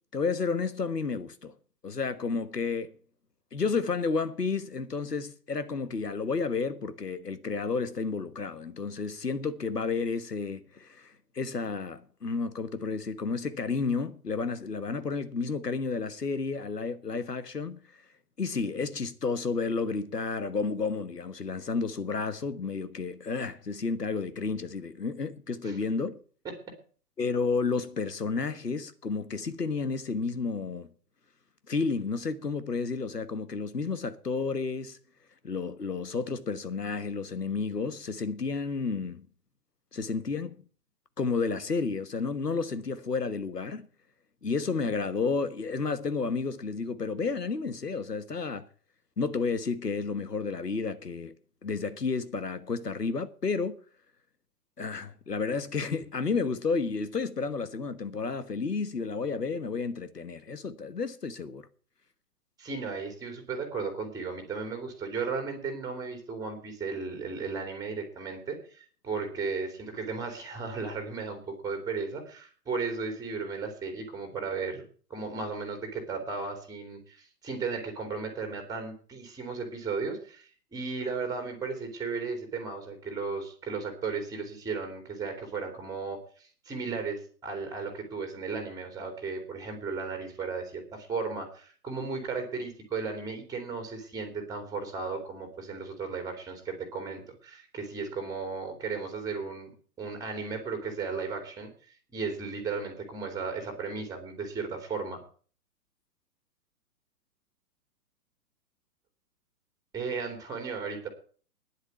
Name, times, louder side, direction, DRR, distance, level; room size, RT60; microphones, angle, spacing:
voice 1, 0.1-1.5 1.8-3.0 3.5-17.8 18.4-26.2 27.2-30.9 31.7-35.0 35.4-39.2 39.9-40.6 41.2-43.9 44.4-48.7 49.2-51.3 51.6-53.7 54.8-61.7, left 4 dB, 80° left, 1.4 m, -31 dB
voice 2, 62.6-99.7 100.0-101.7 102.1-105.2 109.9-111.1, right 4 dB, 10° right, 2.7 m, -35 dB
10.0 x 8.1 x 9.2 m
figure-of-eight pair, 120°, 47 cm